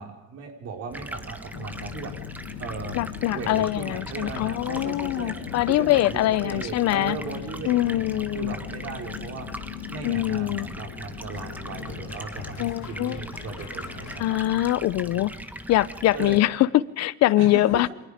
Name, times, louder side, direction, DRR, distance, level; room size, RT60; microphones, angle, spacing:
voice 1, 0.0-2.1 2.6-2.9 3.3-5.3 5.7-14.4 16.1-16.4 17.4-17.9, right 5 dB, 50° right, 3 dB, 5.1 m, -37 dB
Stream, 0.9-16.4, right 1 dB, 5° right, 1.4 m, -40 dB
sound 1, 1.5-14.3, left 18 dB, 80° left, 1.1 m, -40 dB
voice 2, 2.9-7.2 7.6-8.5 10.0-10.7 12.6-13.2 14.2-15.3 15.7-17.9, left 15 dB, 50° left, 17 dB, 0.9 m, -23 dB
29.0 x 26.0 x 5.2 m, 1.0 s
cardioid pair, 155°, 33 cm